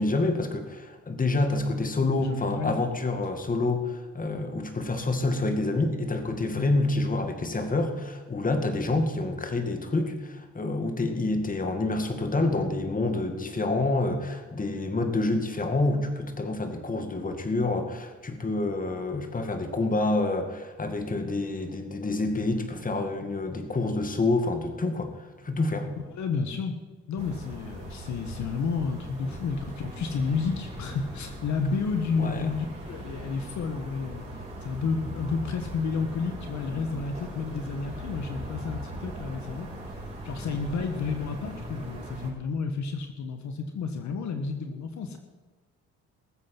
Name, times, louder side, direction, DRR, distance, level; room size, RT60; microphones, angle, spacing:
voice 1, 0.0-25.1 25.4-25.9 29.3-29.4 32.2-32.5, left 2 dB, 25° left, 6 dB, 2.2 m, -27 dB
voice 2, 2.2-2.8 6.5-6.7 26.1-26.7 27.1-34.2 34.6-39.7 40.2-45.2, left 5 dB, 70° left, 6 dB, 1.4 m, -31 dB
sound 1, 27.2-42.3, right 1 dB, 20° right, 5.8 m, -40 dB
20.0 x 7.6 x 6.0 m, 1.3 s
cardioid pair, 90°, 30 cm